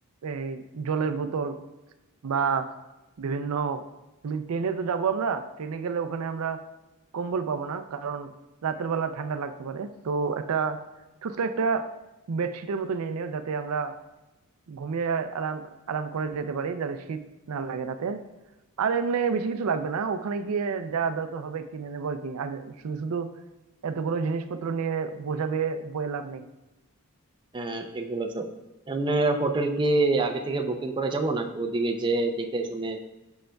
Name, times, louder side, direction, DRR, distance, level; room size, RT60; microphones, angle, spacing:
voice 1, 0.2-1.6 2.2-2.7 3.2-3.8 4.2-6.6 7.1-8.3 8.6-10.8 11.2-11.9 12.3-13.9 14.7-15.6 15.9-17.2 17.5-18.2 18.8-23.3 23.8-26.4, right 5 dB, 85° right, 9 dB, 0.4 m, -29 dB
voice 2, 27.5-28.5 28.9-33.0, right 2 dB, 20° right, 4 dB, 0.4 m, -26 dB
7.6 x 5.6 x 2.3 m, 1.0 s
head